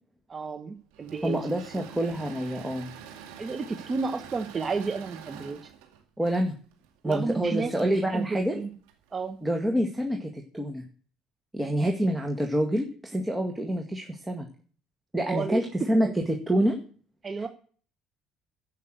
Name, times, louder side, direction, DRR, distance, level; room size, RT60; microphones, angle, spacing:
voice 1, 0.3-1.4 3.4-5.6 7.0-8.7 9.1-9.4 15.3-15.7 17.2-17.5, right 4 dB, 35° right, 8 dB, 1.1 m, -32 dB
Engine / Mechanisms, 0.9-9.3, right 8 dB, 85° right, 2.2 m, -47 dB
voice 2, 1.2-2.9 6.2-6.5 7.0-8.6 9.4-10.8 11.5-14.5 15.1-16.8, right 1 dB, 10° right, 3 dB, 1.9 m, -27 dB
15.0 x 5.9 x 7.8 m, 0.44 s
hypercardioid pair, 70°, 0 cm